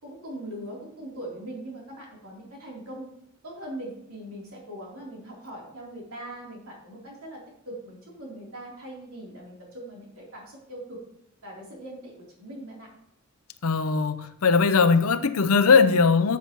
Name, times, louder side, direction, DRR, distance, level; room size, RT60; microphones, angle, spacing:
voice 1, 0.0-3.1 3.4-11.0 11.4-12.9, right 1 dB, 75° right, -3 dB, 3.5 m, -41 dB
voice 2, 13.6-16.4, left 5 dB, 80° left, 11 dB, 0.7 m, -20 dB
12.5 x 7.1 x 3.1 m, 0.74 s
head